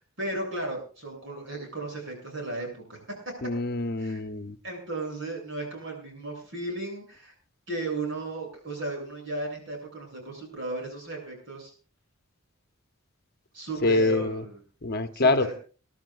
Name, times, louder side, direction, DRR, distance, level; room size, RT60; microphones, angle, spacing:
voice 1, 0.2-3.3 4.0-4.2 4.6-7.3 7.7-11.7 13.5-14.6 15.1-15.5, right 2 dB, 60° right, 1 dB, 7.5 m, -35 dB
voice 2, 3.4-4.6 13.8-14.4 14.8-15.5, left 2 dB, 50° left, 10 dB, 0.9 m, -25 dB
28.0 x 11.5 x 2.5 m, 0.37 s
head